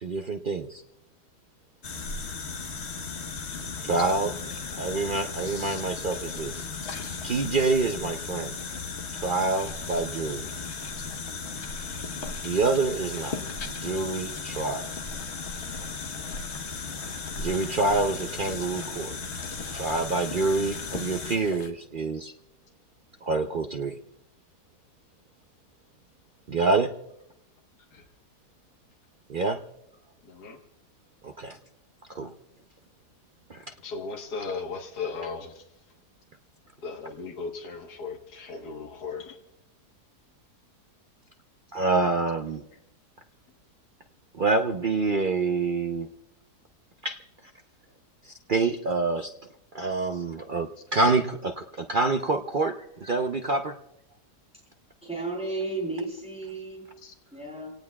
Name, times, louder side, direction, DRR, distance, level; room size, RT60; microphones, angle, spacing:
voice 1, 0.0-0.8 3.9-4.3 4.8-6.6 7.2-8.6 9.2-10.4 12.4-14.9 17.4-19.1 19.7-22.3 23.2-24.0 26.5-26.9 29.3-29.6 31.2-31.6 32.1-32.3 33.5-33.6 41.7-42.6 44.3-46.1 47.0-47.2 48.2-49.3 49.7-53.8, right 3 dB, 55° right, 5 dB, 0.5 m, -27 dB
sound 1, 1.8-21.7, left 4 dB, 45° left, 1.2 m, -36 dB
voice 2, 5.4-5.8 6.8-7.0 27.9-28.1 30.2-30.6 33.8-35.6 36.8-39.4 57.0-57.1, left 4 dB, 70° left, 1 dB, 1.9 m, -37 dB
voice 3, 55.0-56.8 57.3-57.7, right 2 dB, 5° right, -4 dB, 7.7 m, -34 dB
28.5 x 18.0 x 2.3 m, 0.80 s
omnidirectional pair, 1.7 m